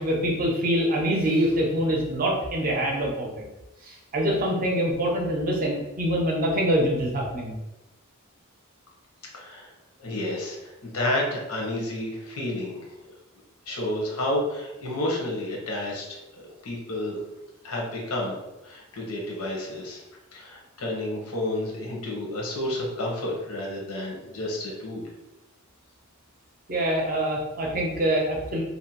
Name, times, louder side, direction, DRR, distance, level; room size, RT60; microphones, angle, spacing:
voice 1, 0.0-3.4 3.8-7.6 26.7-28.6, equal, 40° right, -1 dB, 0.6 m, -25 dB
voice 2, 9.3-9.7 10.0-12.9 13.7-17.2 17.6-18.4 18.6-20.0 20.3-25.1, left 1 dB, 90° left, -2 dB, 0.9 m, -30 dB
2.7 x 2.1 x 2.8 m, 1.0 s
head